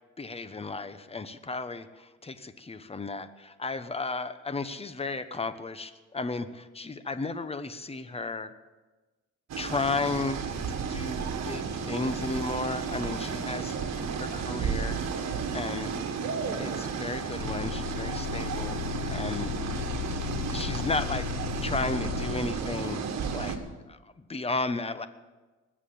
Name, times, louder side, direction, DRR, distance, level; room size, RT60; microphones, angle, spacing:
voice 1, 0.2-8.5 9.6-10.4 10.7-13.8 14.2-15.0 15.5-15.9 16.6-18.8 19.1-19.5 20.5-21.3 21.6-23.0 23.3-23.6 23.9-25.1, left 3 dB, 20° left, 11 dB, 1.1 m, -34 dB
sound 1, 9.5-23.6, right 6 dB, 60° right, 1.9 m, -33 dB
sound 2, 17.4-22.4, left 13 dB, 65° left, 1.3 m, -35 dB
20.5 x 7.5 x 8.7 m, 1.2 s
cardioid pair, 90°, 30 cm